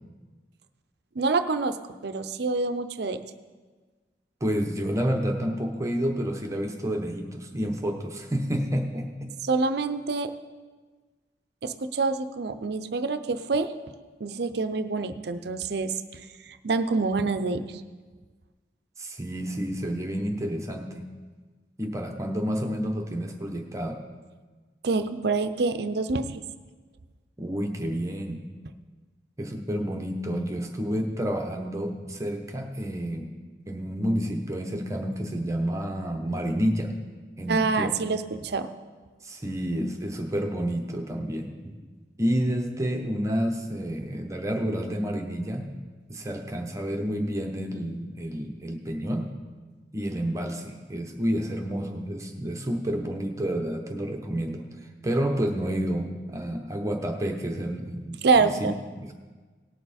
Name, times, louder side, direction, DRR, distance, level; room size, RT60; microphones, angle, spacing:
voice 1, 1.2-1.8 2.0-3.2 9.4-10.3 11.6-13.7 14.2-16.2 16.6-17.8 24.8-26.4 37.5-38.7 58.2-58.7, right 4 dB, 60° right, 10 dB, 0.6 m, -26 dB
voice 2, 4.4-9.3 19.0-21.0 21.8-24.0 27.4-28.4 29.4-33.3 33.7-36.9 37.4-38.0 39.2-41.7 42.2-45.7 46.1-49.3 49.9-54.6 55.0-58.7 59.0-59.1, equal, 15° right, 3 dB, 0.8 m, -29 dB
18.0 x 7.0 x 4.2 m, 1.4 s
head